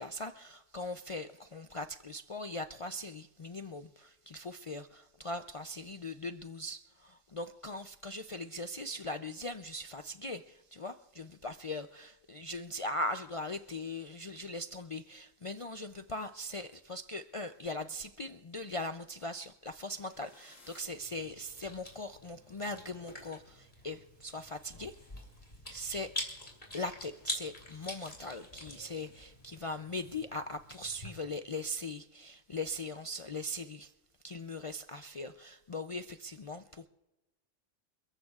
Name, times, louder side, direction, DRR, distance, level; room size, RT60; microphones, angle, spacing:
voice 1, 0.0-24.9 25.7-26.1 26.7-33.9 34.2-36.9, left 2 dB, 55° left, 8 dB, 0.3 m, -40 dB
sound 1, 19.7-21.8, left 3 dB, 90° left, 2.6 m, -63 dB
Chewing mastication, 20.8-31.1, left 1 dB, 40° left, 3.3 m, -45 dB
29.0 x 14.0 x 2.4 m, 1.0 s
omnidirectional pair, 1.3 m